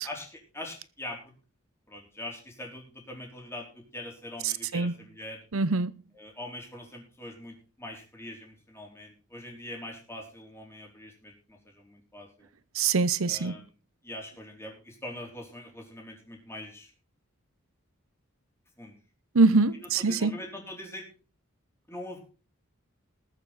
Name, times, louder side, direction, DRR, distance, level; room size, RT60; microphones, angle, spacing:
voice 1, 0.0-1.3 1.9-5.4 6.1-12.5 13.2-13.7 14.0-16.9 18.8-19.0 19.8-21.1 21.9-22.2, left 1 dB, 10° left, 4.2 m, -43 dB
voice 2, 4.4-4.9 5.5-5.9 12.7-13.5 19.3-20.3, right 3 dB, 80° right, 0.8 m, -24 dB
20.5 x 7.1 x 4.1 m
head